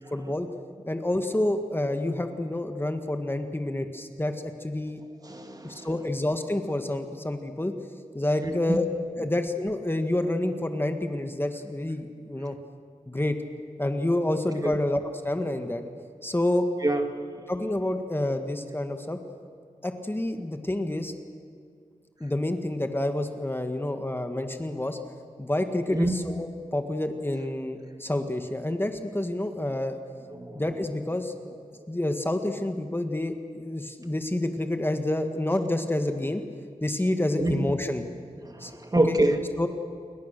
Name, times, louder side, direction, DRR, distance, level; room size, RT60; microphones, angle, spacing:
voice 1, 0.1-0.5 0.9-5.0 5.6-7.7 8.1-8.9 9.2-12.6 13.1-13.4 13.8-15.8 16.2-16.6 17.5-19.2 19.8-21.1 22.2-25.0 25.4-29.9 30.6-31.3 31.9-36.4 36.8-38.0 38.6-38.7 39.1-39.2 39.6-39.7, left 1 dB, 15° left, 6 dB, 1.8 m, -28 dB
voice 2, 5.2-5.9 8.4-8.8 14.6-14.8 16.8-17.1 25.9-26.1 30.3-30.6 37.4-37.7 38.5-39.4, right 1 dB, 30° right, 5 dB, 2.2 m, -26 dB
29.0 x 22.0 x 6.8 m, 2.3 s
wide cardioid pair, 75°, 13 cm